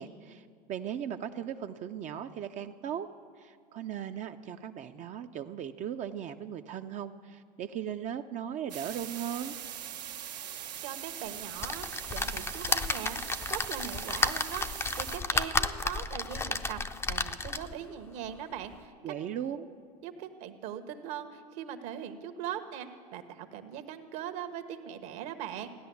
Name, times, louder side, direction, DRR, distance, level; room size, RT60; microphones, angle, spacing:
voice 1, 0.0-3.1 3.4-9.5 19.0-19.7, right 9 dB, 35° right, 7 dB, 0.5 m, -38 dB
sound 1, 8.7-15.2, right 10 dB, 90° right, 1.1 m, -41 dB
voice 2, 10.8-13.2 13.5-14.7 15.0-16.8 17.1-19.1 20.0-25.7, right 9 dB, 65° right, 8 dB, 1.3 m, -40 dB
sound 2, 11.6-17.8 18.4-18.5 18.7-18.8, left 3 dB, 10° left, 0.5 m, -32 dB
15.5 x 10.5 x 7.0 m, 2.2 s
hypercardioid pair, 105°, 21 cm